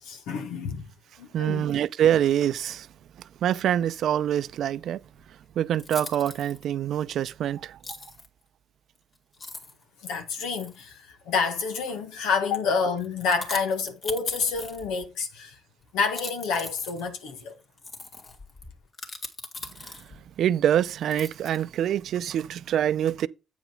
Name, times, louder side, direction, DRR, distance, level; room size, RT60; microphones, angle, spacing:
voice 1, 0.0-0.9 1.2-1.7 10.0-15.6 15.9-17.6, left 5 dB, 85° left, 1.6 m, -28 dB
voice 2, 1.3-2.9 3.4-5.0 5.6-7.8 19.8-19.9 20.4-23.3, right 10 dB, 75° right, 0.5 m, -25 dB
sound 1, 5.2-5.3 5.7-6.6 7.8-8.3 9.0-9.1 9.3-9.8 10.5-10.9 11.6-12.1 13.0-15.1 16.0-20.3 21.0-21.8, left 3 dB, 45° left, 2.6 m, -40 dB
8.6 x 5.1 x 4.8 m
supercardioid pair, 60°, 0 cm